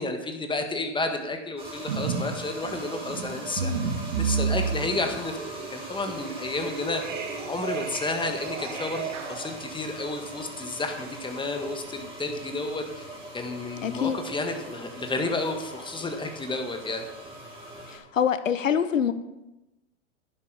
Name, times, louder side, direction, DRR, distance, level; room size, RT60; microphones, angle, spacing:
voice 1, 0.0-3.9 4.2-5.4 5.7-7.0 7.5-13.0 13.3-17.0, left 2 dB, 15° left, 5 dB, 1.7 m, -31 dB
sound 1, 1.6-18.0, right 1 dB, 15° right, 5.0 m, -41 dB
sound 2, 1.9-2.3 2.6-9.5, right 5 dB, 75° right, 2.4 m, -31 dB
voice 2, 13.8-14.2 17.9-19.1, left 8 dB, 90° left, 12 dB, 0.9 m, -25 dB
11.0 x 9.9 x 5.0 m, 0.99 s
hypercardioid pair, 105°, 37 cm